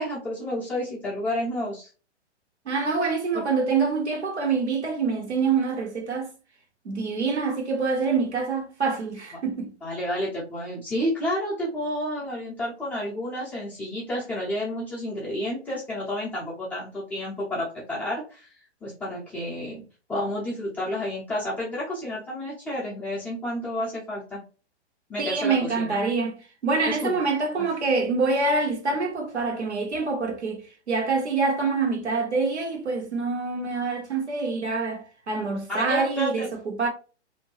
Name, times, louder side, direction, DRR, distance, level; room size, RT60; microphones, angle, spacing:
voice 1, 0.0-1.9 3.3-3.4 9.8-18.5 18.8-19.8 20.1-24.4 25.1-26.0 26.9-27.2 27.6-27.7 35.7-36.5, left 1 dB, 5° left, 0.6 m, -30 dB
voice 2, 2.7-6.3 6.8-9.7 25.2-26.3 26.6-30.6 30.9-36.9, right 4 dB, 70° right, 1.1 m, -26 dB
2.6 x 2.2 x 3.1 m
figure-of-eight pair, 120°, 35 cm